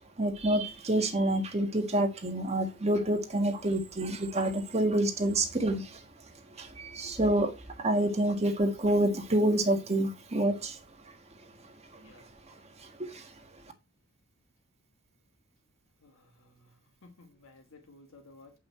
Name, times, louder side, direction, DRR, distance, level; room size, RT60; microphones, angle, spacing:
voice 1, 0.2-6.0 6.6-10.8 12.0-12.1 12.8-13.3, right 1 dB, 30° right, 1.6 m, -28 dB
voice 2, 17.0-18.5, left 3 dB, 60° left, 1.4 m, -55 dB
8.5 x 5.6 x 4.4 m
head